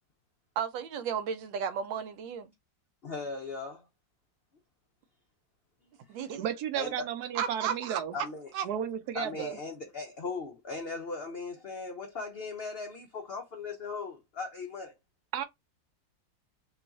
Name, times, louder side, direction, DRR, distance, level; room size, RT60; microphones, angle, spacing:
voice 1, 0.6-2.5 6.1-6.5 7.4-8.0 8.5-8.6, right 7 dB, 90° right, 1.4 m, -33 dB
voice 2, 3.0-3.9 6.7-7.1 8.1-8.5 9.1-14.9, left 4 dB, 85° left, 0.5 m, -38 dB
voice 3, 6.4-8.1 8.6-9.6 15.3-15.4, right 9 dB, 70° right, 1.0 m, -33 dB
3.1 x 2.4 x 3.9 m
omnidirectional pair, 2.0 m